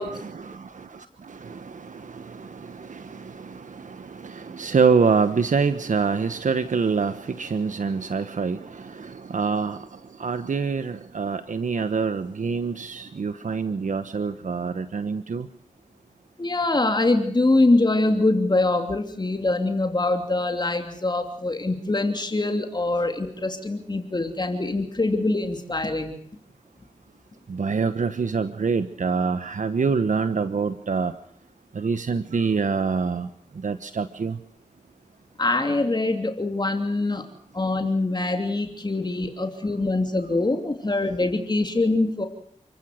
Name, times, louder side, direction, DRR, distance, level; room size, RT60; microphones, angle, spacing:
voice 1, 0.0-9.8 10.2-15.5 27.5-31.1 31.7-33.3 33.6-34.4, right 5 dB, 75° right, 10 dB, 1.2 m, -26 dB
voice 2, 16.4-26.1 35.4-37.2 37.5-42.3, left 2 dB, 35° left, 5 dB, 2.9 m, -24 dB
30.0 x 15.0 x 7.9 m, 0.66 s
wide cardioid pair, 70°, 13 cm